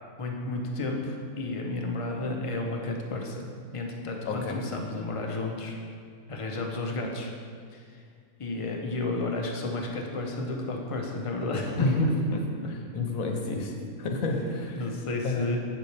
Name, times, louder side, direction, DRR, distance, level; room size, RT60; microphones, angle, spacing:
voice 1, 0.2-5.8 6.3-7.3 7.7-8.0 8.4-12.7 14.7-15.6, left 2 dB, 30° left, 0 dB, 0.6 m, -32 dB
voice 2, 11.8-12.1 12.7-13.7 14.0-14.7 15.2-15.6, left 3 dB, 70° left, 2 dB, 1.3 m, -29 dB
8.1 x 7.2 x 3.3 m, 2.1 s
omnidirectional pair, 1.6 m